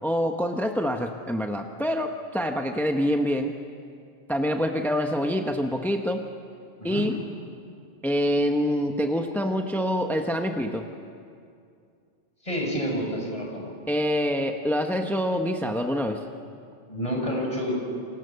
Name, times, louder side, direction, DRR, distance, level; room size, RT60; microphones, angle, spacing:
voice 1, 0.0-3.6 4.3-6.2 6.8-7.2 8.0-10.8 13.9-16.2, equal, ahead, 4 dB, 1.1 m, -26 dB
voice 2, 12.4-13.7 16.9-17.7, equal, 30° left, 0 dB, 5.9 m, -29 dB
29.0 x 26.0 x 6.9 m, 2.3 s
omnidirectional pair, 1.1 m